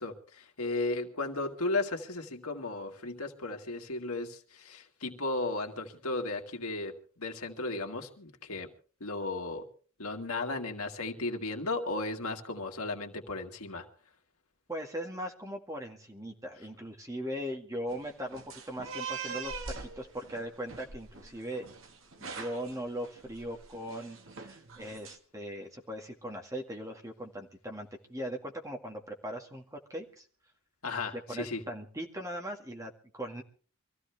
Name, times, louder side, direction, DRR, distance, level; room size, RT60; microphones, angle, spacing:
voice 1, 0.0-8.7 9.0-9.6 10.0-13.9 30.8-31.6, left 2 dB, 85° left, 3 dB, 2.1 m, -35 dB
voice 2, 14.7-19.5 19.8-21.7 22.2-30.3 31.1-33.4, equal, 15° right, 2 dB, 1.9 m, -39 dB
sound 1, 17.9-25.2, right 5 dB, 60° right, 1.6 m, -43 dB
24.5 x 14.5 x 3.4 m, 0.40 s
head